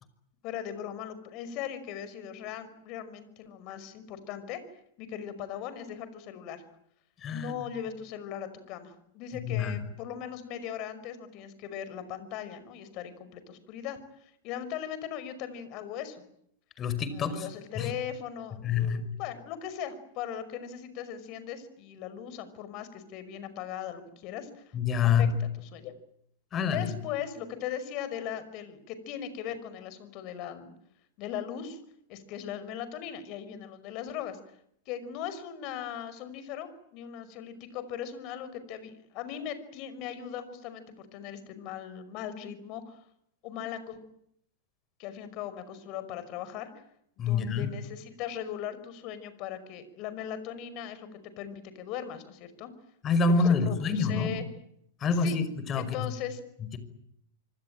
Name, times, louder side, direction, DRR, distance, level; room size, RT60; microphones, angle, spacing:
voice 1, 0.4-4.6 5.0-6.6 7.3-16.2 17.1-24.6 25.2-25.9 26.7-30.7 31.2-31.8 32.1-34.4 34.9-43.0 43.4-44.0 45.0-46.7 47.2-51.1 51.4-52.7 53.6-54.4 55.2-55.4 55.8-56.4, left 9 dB, 45° left, 13 dB, 5.5 m, -39 dB
voice 2, 7.2-7.6 9.5-9.8 16.8-17.5 17.8-17.9 18.6-19.1 24.7-25.4 26.5-26.9 47.2-47.7 53.0-54.3 55.0-56.1, left 5 dB, 30° left, 13 dB, 5.3 m, -26 dB
26.5 x 24.5 x 9.0 m, 0.73 s
hypercardioid pair, 100°, 0 cm